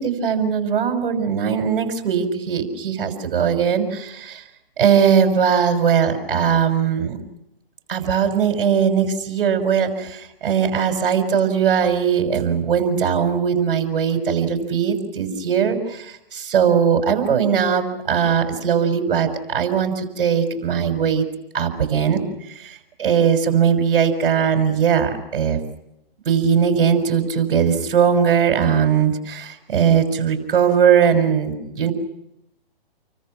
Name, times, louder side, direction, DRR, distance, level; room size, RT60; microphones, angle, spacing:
voice 1, 0.0-4.4 4.8-7.2 7.9-21.3 21.5-22.2 22.6-25.6 26.2-31.9, right 7 dB, 65° right, 6 dB, 6.1 m, -19 dB
30.0 x 24.5 x 5.9 m, 0.82 s
hypercardioid pair, 130°, 30 cm